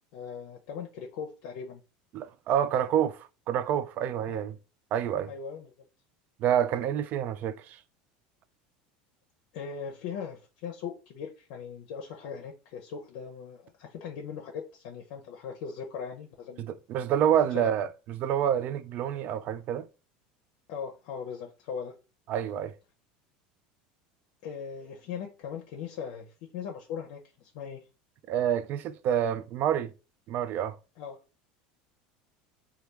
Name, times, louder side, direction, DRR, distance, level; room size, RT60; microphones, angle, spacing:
voice 1, 0.1-1.8 4.3-4.4 5.3-5.7 9.5-16.7 17.5-17.8 20.7-21.9 24.4-27.8 31.0-31.2, left 6 dB, 70° left, 0.6 m, -39 dB
voice 2, 2.1-4.6 4.9-5.3 6.4-7.8 16.6-19.9 22.3-22.7 28.3-29.9 30.3-30.8, right 9 dB, 50° right, 0.4 m, -28 dB
3.2 x 2.3 x 3.1 m
supercardioid pair, 110°, 4 cm